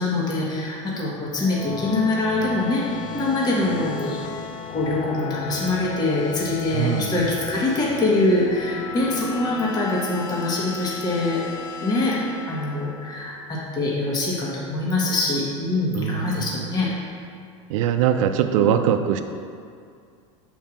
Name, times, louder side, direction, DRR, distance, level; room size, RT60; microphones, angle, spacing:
voice 1, 0.0-4.2 4.7-11.4 11.8-12.2 12.5-16.9 18.6-18.7, left 2 dB, 25° left, -5 dB, 1.5 m, -24 dB
sound 1, 1.2-13.6, left 6 dB, 45° left, 0.6 m, -35 dB
voice 2, 6.7-7.1 15.9-16.5 17.7-19.2, right 9 dB, 75° right, 7 dB, 0.5 m, -21 dB
5.6 x 4.6 x 5.9 m, 2.3 s
supercardioid pair, 120°, 17 cm